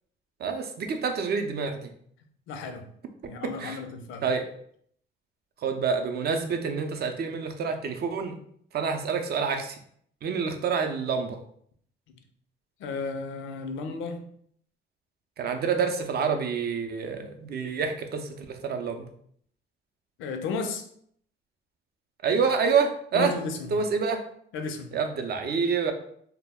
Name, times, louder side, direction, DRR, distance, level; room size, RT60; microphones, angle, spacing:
voice 1, 0.4-1.9 3.6-3.8 4.2-4.4 5.6-8.3 8.7-9.8 10.2-11.4 15.4-19.0 22.2-23.3 23.7-24.2 24.9-25.9, right 5 dB, 55° right, 6 dB, 0.5 m, -27 dB
voice 2, 2.5-2.9 3.2-4.3 12.8-14.3 20.2-20.9 23.1-23.8 24.5-25.0, left 4 dB, 80° left, 6 dB, 0.4 m, -33 dB
2.2 x 2.0 x 3.4 m, 0.65 s
cardioid pair, 90°, 20 cm